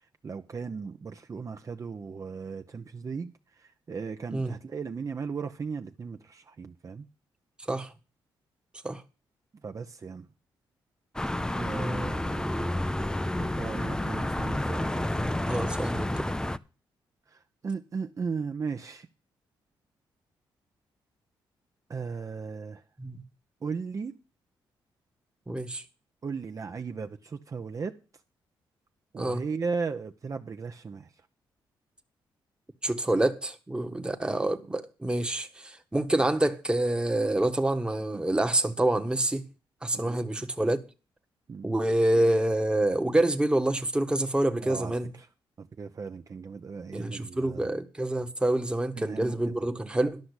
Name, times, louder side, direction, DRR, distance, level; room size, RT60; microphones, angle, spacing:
voice 1, 0.2-3.3 3.9-7.1 9.6-10.2 11.5-12.4 13.3-15.4 17.3-19.1 21.9-22.8 23.6-24.1 26.2-28.0 29.1-31.1 33.9-34.0 39.9-40.2 41.5-41.7 44.6-45.3 45.6-47.7 48.9-49.4, right 5 dB, 40° right, 0.8 m, -36 dB
sound 1, 11.2-16.6, left 1 dB, 10° left, 0.5 m, -30 dB
voice 2, 11.8-12.7 15.4-16.3 23.0-23.2 25.5-25.8 29.2-29.4 32.8-39.4 39.8-40.8 41.6-45.1 46.9-50.2, right 1 dB, 10° right, 1.3 m, -27 dB
12.0 x 5.9 x 8.1 m
cardioid pair, 90°, 9 cm